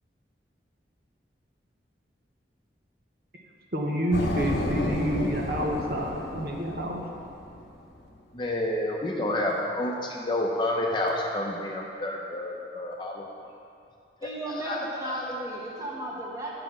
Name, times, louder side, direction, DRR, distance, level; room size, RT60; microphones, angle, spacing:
voice 1, 3.7-7.0, right 1 dB, 55° right, 0 dB, 0.9 m, -28 dB
sound 1, 4.1-7.8, left 1 dB, 70° left, 0.9 m, -31 dB
voice 2, 8.3-13.3 14.2-14.3 14.6-15.2, left 1 dB, 25° left, -1 dB, 0.7 m, -29 dB
voice 3, 14.2-16.5, right 1 dB, 20° right, -4 dB, 1.4 m, -35 dB
9.3 x 5.1 x 6.0 m, 2.4 s
head